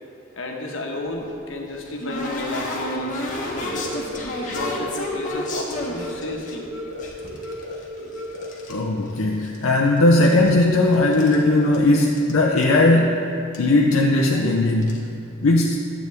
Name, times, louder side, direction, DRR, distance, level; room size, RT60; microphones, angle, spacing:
voice 1, 0.4-3.9 4.4-6.7 8.7-8.8, left 2 dB, 65° left, 1 dB, 1.2 m, -32 dB
sound 1, 1.1-6.6 7.0-8.8 9.1-9.8 10.1-11.4 11.7-11.8 12.1-12.3 12.6-12.7 13.5-13.6 13.9-14.2 14.7-15.0, left 1 dB, 40° left, 1.3 m, -31 dB
sound 2, 3.6-8.6, left 1 dB, 60° right, 1.8 m, -35 dB
voice 2, 8.7-13.2 13.6-15.1 15.4-15.8, left 2 dB, 85° left, -1 dB, 0.6 m, -18 dB
12.0 x 8.2 x 3.4 m, 2.8 s
head